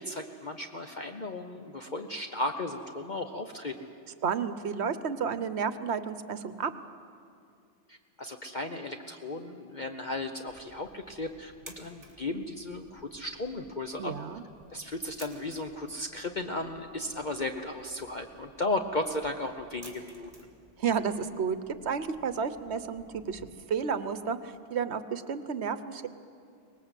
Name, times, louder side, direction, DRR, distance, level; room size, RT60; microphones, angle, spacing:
voice 1, 0.0-3.9 7.9-14.1 14.7-20.3, left 2 dB, 40° left, 5 dB, 1.0 m, -35 dB
voice 2, 4.2-6.7 14.0-14.4 20.8-23.4 23.7-26.1, right 6 dB, 65° right, 12 dB, 1.1 m, -31 dB
sound 1, 10.5-23.5, right 1 dB, 30° right, 2.9 m, -56 dB
24.0 x 19.5 x 8.2 m, 2.4 s
omnidirectional pair, 1.3 m